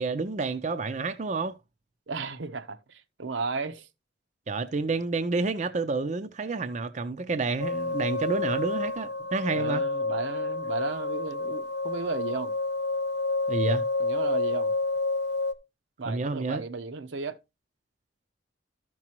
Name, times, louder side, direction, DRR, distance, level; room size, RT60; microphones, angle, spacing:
voice 1, 0.0-1.6 4.5-9.8 13.5-13.8 16.1-16.6, right 3 dB, 40° right, 0.5 m, -29 dB
voice 2, 2.1-3.9 9.5-12.5 14.0-14.7 16.0-17.4, right 4 dB, 80° right, 0.8 m, -34 dB
sound 1, 7.6-15.5, left 3 dB, 60° left, 0.8 m, -29 dB
13.0 x 6.0 x 2.9 m
head